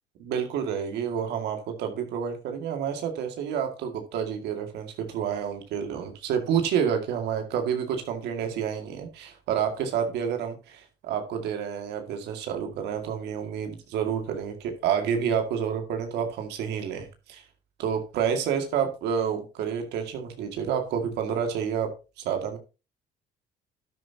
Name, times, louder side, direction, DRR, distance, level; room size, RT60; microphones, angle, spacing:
voice 1, 0.2-17.4 17.8-21.9 22.2-22.6, right 8 dB, 80° right, 5 dB, 2.2 m, -29 dB
12.0 x 9.7 x 2.9 m, 0.29 s
cardioid pair, 110°, 17 cm